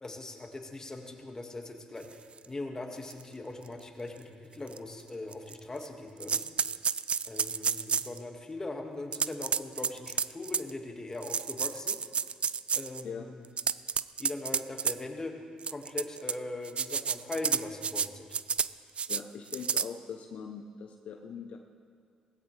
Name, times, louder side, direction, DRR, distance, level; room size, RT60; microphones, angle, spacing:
voice 1, 0.0-6.4 7.3-12.0 12.7-13.4 14.2-15.3 15.7-18.4, left 2 dB, 25° left, 2 dB, 1.8 m, -40 dB
sound 1, 2.4-2.5 3.1-3.2 3.7-3.8 4.7-4.8 5.3-5.9 6.2-8.2 9.1-10.7 11.2-13.0 13.4-14.9 15.6-16.3 16.6-18.1 18.3-18.7 19.0-19.2 19.5-19.9, right 6 dB, 45° right, 0.3 m, -30 dB
voice 2, 19.1-21.6, left 6 dB, 65° left, 4 dB, 0.7 m, -41 dB
18.0 x 15.5 x 3.3 m, 2.1 s
cardioid pair, 75°, 3 cm